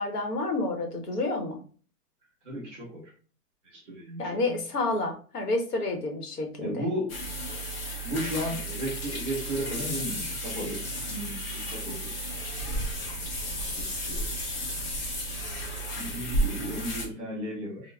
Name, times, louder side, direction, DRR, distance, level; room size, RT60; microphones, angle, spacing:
voice 1, 0.0-1.6 4.2-6.8, left 2 dB, 80° left, 4 dB, 1.1 m, -29 dB
voice 2, 2.4-3.1 3.7-4.6 6.6-7.1 8.0-12.2 13.6-15.1 16.0-17.9, equal, 5° left, -4 dB, 0.5 m, -35 dB
sound 1, 7.1-17.1, equal, 40° left, 0.9 m, -33 dB
4.5 x 2.1 x 2.3 m, 0.41 s
hypercardioid pair, 165°, 47 cm